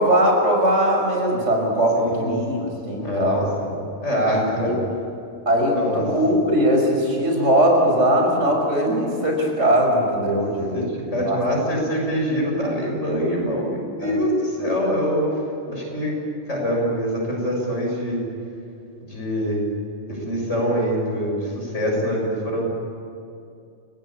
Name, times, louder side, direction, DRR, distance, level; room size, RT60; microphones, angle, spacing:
voice 1, 0.0-3.5 4.3-4.8 5.5-10.8 11.1-11.4 14.0-14.2, equal, 90° right, 0 dB, 6.2 m, -20 dB
voice 2, 1.9-2.6 3.0-3.7 4.0-4.7 5.7-6.0 10.7-15.4 15.7-16.2 16.5-18.2 19.0-19.7 20.1-22.8, equal, 85° left, -2 dB, 7.5 m, -24 dB
29.5 x 19.0 x 8.9 m, 2.5 s
omnidirectional pair, 1.2 m